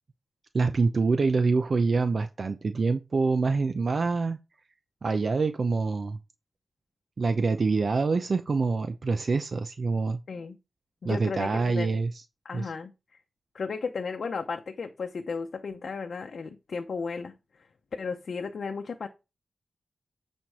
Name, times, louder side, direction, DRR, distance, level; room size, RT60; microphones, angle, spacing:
voice 1, 0.5-4.4 5.0-6.2 7.2-10.2 11.0-12.2 12.5-12.7, right 4 dB, 65° right, 0.6 m, -26 dB
voice 2, 11.0-11.9 12.4-12.9 13.5-17.3 18.0-19.1, left 5 dB, 80° left, 0.8 m, -34 dB
9.0 x 4.4 x 4.9 m
cardioid pair, 65°, 0 cm